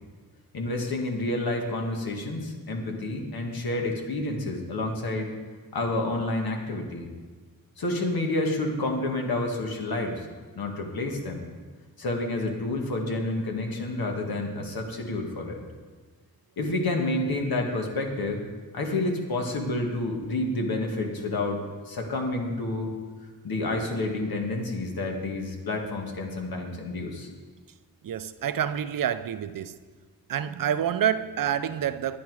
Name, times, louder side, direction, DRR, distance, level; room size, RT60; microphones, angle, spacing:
voice 1, 0.5-5.3 5.7-7.1 7.8-10.3 10.5-11.4 12.0-15.6 16.6-18.4 18.7-22.9 23.4-27.3, left 2 dB, 85° left, 1.7 m, -29 dB
voice 2, 28.0-29.7 30.3-32.2, right 9 dB, 65° right, 0.5 m, -28 dB
10.5 x 9.6 x 4.7 m
wide cardioid pair, 100°, 36 cm